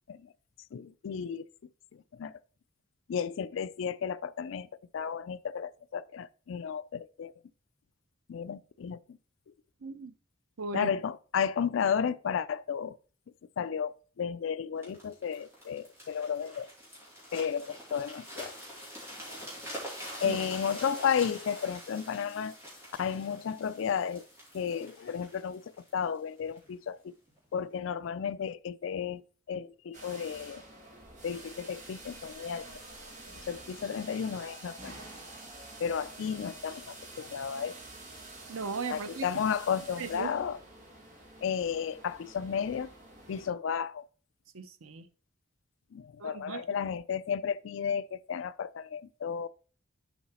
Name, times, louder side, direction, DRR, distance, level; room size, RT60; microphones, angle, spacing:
voice 1, 0.7-1.5 1.9-2.4 3.1-4.7 4.9-7.3 8.3-9.2 10.7-13.0 13.6-16.7 17.3-18.5 20.2-22.6 23.0-24.3 24.5-25.6 25.9-27.1 27.5-29.2 29.5-30.6 31.2-32.7 33.5-34.9 35.8-37.7 38.9-40.6 41.4-42.9 43.3-44.1 45.9-49.5, left 7 dB, 70° left, 0.3 m, -33 dB
voice 2, 9.8-10.1 10.6-10.9 20.3-20.4 38.5-39.2 40.0-40.3 44.5-45.0 46.2-46.6, right 4 dB, 90° right, 0.7 m, -37 dB
sound 1, 14.8-26.7 27.3-27.5, equal, 10° right, 2.8 m, -45 dB
sound 2, 29.9-43.5, right 2 dB, 35° right, 1.5 m, -48 dB
7.0 x 4.8 x 4.2 m
head